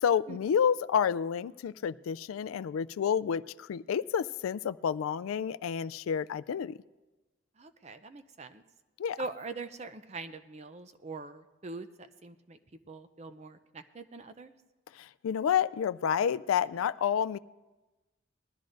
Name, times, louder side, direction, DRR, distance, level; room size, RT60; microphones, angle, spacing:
voice 1, 0.0-6.8 9.0-9.2 15.0-17.4, left 8 dB, 85° left, 17 dB, 0.3 m, -29 dB
voice 2, 7.6-8.6 9.2-12.6 12.9-14.5, right 3 dB, 30° right, 9 dB, 0.5 m, -43 dB
20.0 x 12.5 x 2.6 m, 1.1 s
head